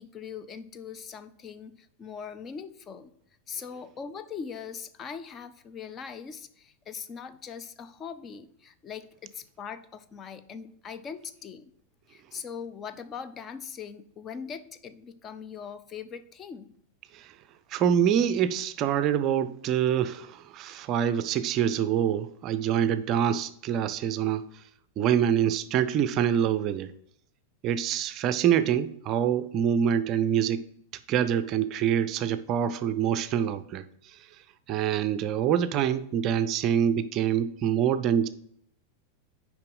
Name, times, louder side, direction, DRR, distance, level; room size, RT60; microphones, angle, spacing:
voice 1, 0.0-3.1 3.5-11.7 12.1-16.7, left 6 dB, 25° left, 10 dB, 0.5 m, -41 dB
voice 2, 17.7-24.4 25.0-26.9 27.6-30.6 31.1-33.8 34.7-38.3, right 9 dB, 35° right, 12 dB, 0.4 m, -25 dB
6.7 x 5.0 x 5.3 m, 0.69 s
figure-of-eight pair, 90°, 0 cm